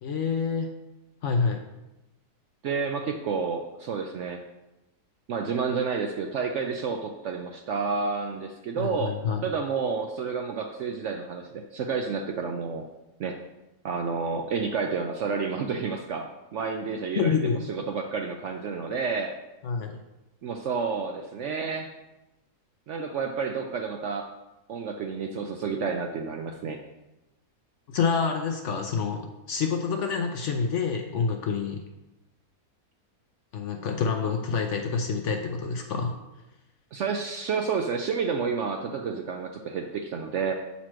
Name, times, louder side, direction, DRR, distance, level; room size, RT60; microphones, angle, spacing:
voice 1, 0.0-0.7 1.2-1.6 8.8-9.4 17.1-17.6 19.6-20.0 27.9-31.8 33.5-36.1, left 5 dB, 65° left, 4 dB, 0.8 m, -27 dB
voice 2, 2.6-4.4 5.3-9.1 9.4-12.8 13.2-13.4 13.8-16.3 16.5-19.3 20.4-21.9 22.9-24.3 24.7-26.8 36.9-40.5, right 5 dB, 70° right, 3 dB, 0.7 m, -30 dB
7.4 x 4.2 x 4.5 m, 0.99 s
omnidirectional pair, 1.7 m